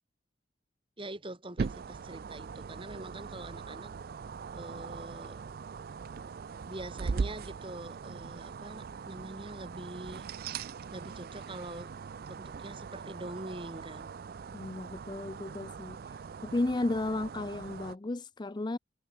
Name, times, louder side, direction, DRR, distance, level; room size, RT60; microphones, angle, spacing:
voice 1, 1.0-3.9 4.5-5.4 6.6-10.3 10.9-11.9 12.3-14.1, right 1 dB, 25° right, 3.8 m, -44 dB
sound 1, 1.6-18.0, right 5 dB, 50° right, 0.4 m, -40 dB
voice 2, 14.5-16.0 16.4-18.8, left 2 dB, 20° left, 0.5 m, -33 dB
head